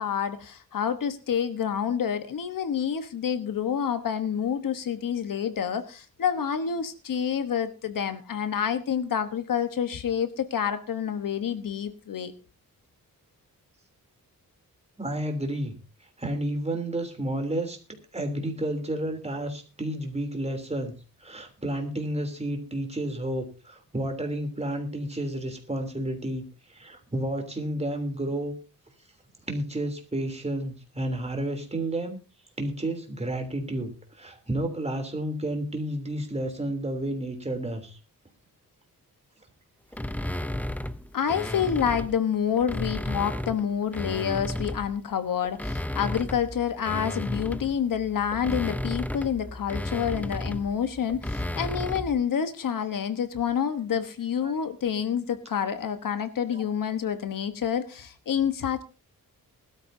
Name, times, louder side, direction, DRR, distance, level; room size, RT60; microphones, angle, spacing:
voice 1, 0.0-12.3 41.1-58.8, left 8 dB, 65° left, 10 dB, 1.2 m, -28 dB
voice 2, 15.0-15.7 16.2-17.8 18.1-20.9 21.2-28.5 29.4-32.2 32.6-38.0 54.4-54.5 56.5-56.6, right 1 dB, 20° right, 4 dB, 3.2 m, -31 dB
sound 1, 39.9-42.2 42.6-45.0 45.4-52.2, left 1 dB, 5° left, 0.6 m, -33 dB
20.5 x 13.0 x 2.7 m, 0.32 s
wide cardioid pair, 135°, 35 cm